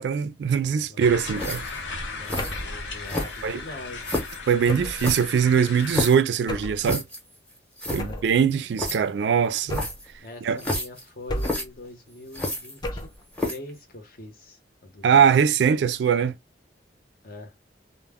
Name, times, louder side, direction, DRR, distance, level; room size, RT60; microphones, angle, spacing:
voice 1, 0.0-1.6 3.4-3.6 4.5-7.0 7.9-9.8 10.4-10.6 15.0-16.3, right 7 dB, 70° right, 0.3 m, -22 dB
sound 1, 1.0-6.1, left 3 dB, 85° left, 0.9 m, -36 dB
sound 2, 1.3-1.8 2.3-2.6 3.1-3.6 4.0-4.4 5.0-6.2 6.8-7.2 7.5-7.6 7.8-8.0 8.8-9.0 9.7-10.1 10.6-11.0 11.4-11.6 12.3-13.0 13.3-13.7, left 1 dB, 5° left, 0.7 m, -30 dB
voice 2, 1.6-4.3 7.9-8.2 10.2-13.1 13.4-15.3 17.2-17.5, left 1 dB, 50° left, 0.8 m, -43 dB
sound 3, 2.4-2.8 4.7-5.1 6.5-6.9 8.0-8.4 9.7-10.1 11.3-11.8 12.8-13.2, left 1 dB, 25° left, 0.4 m, -32 dB
2.1 x 2.1 x 3.4 m
head